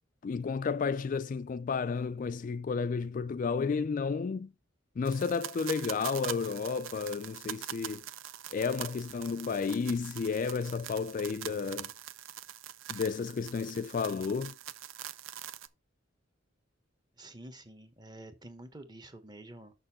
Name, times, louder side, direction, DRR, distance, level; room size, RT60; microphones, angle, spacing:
voice 1, 0.2-4.5 5.0-8.0 8.5-11.9 12.9-14.6, left 5 dB, 40° left, 0.3 m, -32 dB
sound 1, 5.0-15.7, right 11 dB, 80° right, 0.6 m, -43 dB
voice 2, 17.2-19.7, right 1 dB, 20° right, 1.1 m, -49 dB
6.7 x 6.6 x 4.2 m
head